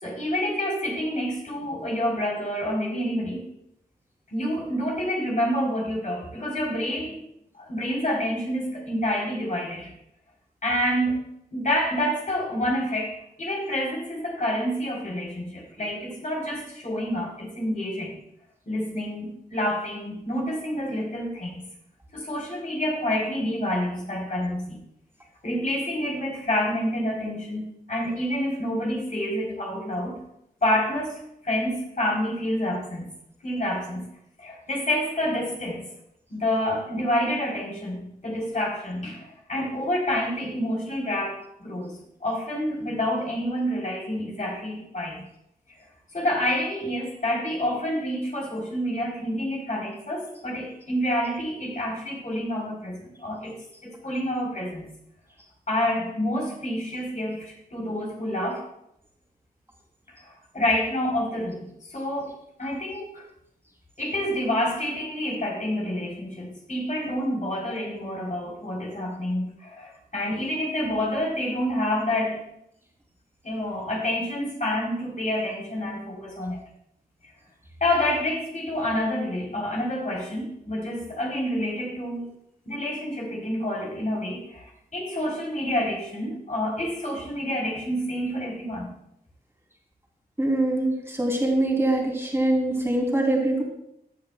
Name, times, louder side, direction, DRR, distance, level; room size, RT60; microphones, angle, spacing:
voice 1, 0.0-3.5 4.3-7.2 7.6-9.9 10.6-11.2 11.5-18.2 18.7-21.7 22.1-24.8 25.4-30.2 30.6-33.1 33.4-34.1 34.4-35.9 36.3-45.3 45.7-45.8 46.1-53.6 53.8-54.9 55.7-58.7 60.1-62.3 62.6-63.3 64.0-72.4 73.4-76.6 77.8-82.3 82.7-88.9, left 1 dB, 50° left, -2 dB, 3.6 m, -28 dB
voice 2, 90.4-93.6, right 1 dB, 15° right, -2 dB, 3.0 m, -23 dB
16.0 x 9.7 x 2.3 m, 0.78 s
wide cardioid pair, 85°, 16 cm